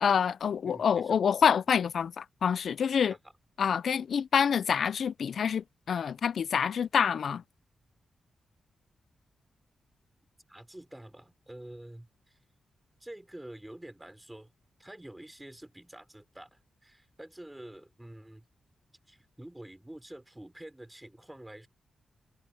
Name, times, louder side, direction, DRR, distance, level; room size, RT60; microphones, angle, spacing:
voice 1, 0.0-3.1 3.6-7.4, left 7 dB, 70° left, 0.4 m, -27 dB
voice 2, 0.6-1.2 10.5-12.4 13.0-14.5 14.8-18.5 19.1-21.7, right 1 dB, 10° right, 3.4 m, -47 dB
cardioid pair, 75°, 0 cm